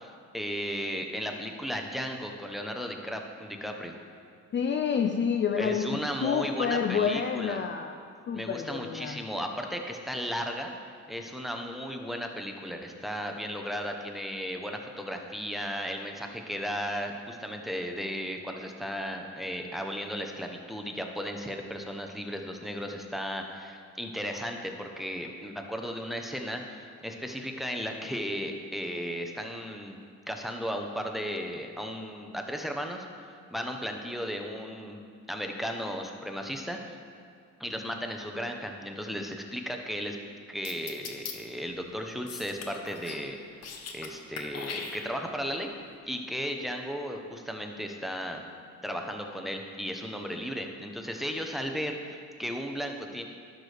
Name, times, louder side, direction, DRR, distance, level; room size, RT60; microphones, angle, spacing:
voice 1, 0.0-3.9 5.6-7.6 8.3-10.7 11.1-30.0 30.3-33.1 33.5-35.0 35.3-37.0 37.6-40.2 40.5-43.4 43.9-45.7 46.1-48.4 48.8-53.2, equal, ahead, 3 dB, 0.8 m, -35 dB
voice 2, 4.5-8.0 8.3-9.2, left 6 dB, 40° left, 5 dB, 0.4 m, -28 dB
sound 1, 40.6-41.3 42.3-43.2 43.5-44.1 44.4-45.4, left 5 dB, 55° left, 1.0 m, -39 dB
11.5 x 6.6 x 3.4 m, 2.3 s
cardioid pair, 90°, 30 cm